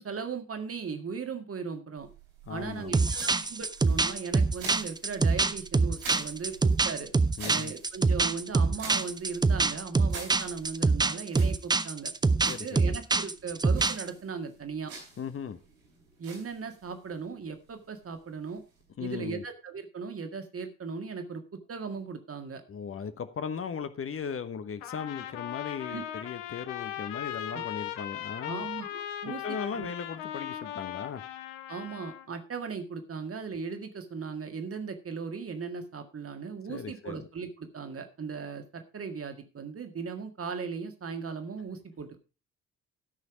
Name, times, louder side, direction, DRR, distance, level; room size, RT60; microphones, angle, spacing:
voice 1, 0.0-2.1 2.5-7.1 7.4-14.9 16.2-18.6 19.0-22.6 25.9-26.1 27.5-27.6 28.5-29.9 31.7-42.2, right 5 dB, 35° right, 7 dB, 1.8 m, -38 dB
sound 1, 2.0-19.2, right 4 dB, 75° right, 3.9 m, -48 dB
voice 2, 2.5-3.5 7.4-7.7 12.5-12.9 15.2-15.6 19.0-19.4 22.7-28.6 29.2-31.2 36.7-37.2, left 6 dB, 30° left, 11 dB, 1.1 m, -37 dB
sound 2, 2.9-14.1, right 3 dB, 10° right, 0.6 m, -25 dB
Trumpet, 24.8-32.3, left 12 dB, 65° left, 1.0 m, -38 dB
13.0 x 6.3 x 4.9 m, 0.33 s
figure-of-eight pair, 45°, 41 cm